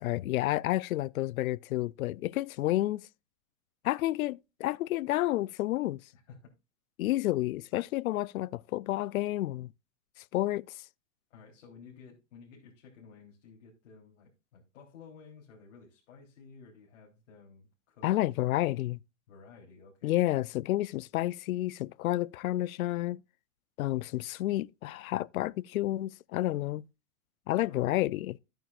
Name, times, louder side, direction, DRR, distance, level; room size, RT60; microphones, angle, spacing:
voice 1, 0.0-3.0 3.8-6.0 7.0-9.7 10.3-10.6 18.0-19.0 20.0-23.2 23.8-26.8 27.5-28.4, left 16 dB, 85° left, 0.5 m, -30 dB
voice 2, 6.1-6.5 11.3-18.6 19.3-20.2 27.6-27.9, left 5 dB, 65° left, 3.7 m, -54 dB
13.5 x 9.1 x 2.5 m
supercardioid pair, 155°, 41 cm